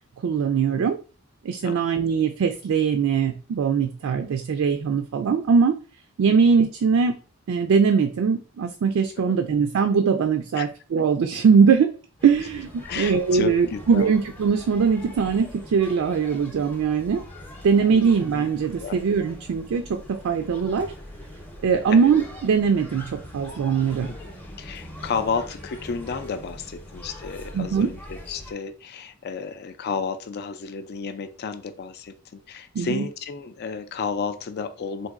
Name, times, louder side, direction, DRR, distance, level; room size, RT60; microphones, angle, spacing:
voice 1, 0.2-1.0 1.4-5.7 6.2-7.1 7.5-11.9 12.2-17.2 17.6-19.8 20.1-20.9 21.6-24.1 27.5-27.9 32.8-33.0, right 6 dB, 65° right, 6 dB, 0.3 m, -21 dB
voice 2, 1.6-2.0 9.3-9.4 10.6-10.7 12.8-14.1 17.9-18.1 18.8-19.0 21.9-22.1 24.1-24.2 24.6-35.1, left 5 dB, 50° left, 9 dB, 0.4 m, -32 dB
sound 1, 12.2-28.5, left 1 dB, 10° left, 0.7 m, -42 dB
3.9 x 2.6 x 2.4 m, 0.36 s
head